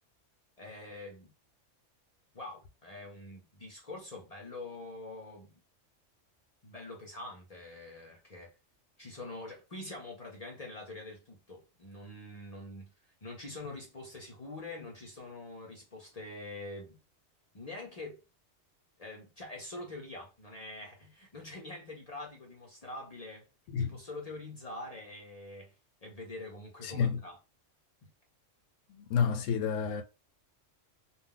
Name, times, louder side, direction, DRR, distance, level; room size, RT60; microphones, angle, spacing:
voice 1, 0.6-1.3 2.3-5.5 6.6-8.5 9.0-12.9 13.2-17.0 17.5-18.2 19.0-23.5 23.8-25.7 26.0-27.4 28.0-28.1, left 2 dB, 40° left, 0.7 m, -45 dB
voice 2, 26.8-27.2 28.9-30.0, left 6 dB, 85° left, 0.9 m, -30 dB
2.3 x 2.1 x 3.7 m
omnidirectional pair, 1.3 m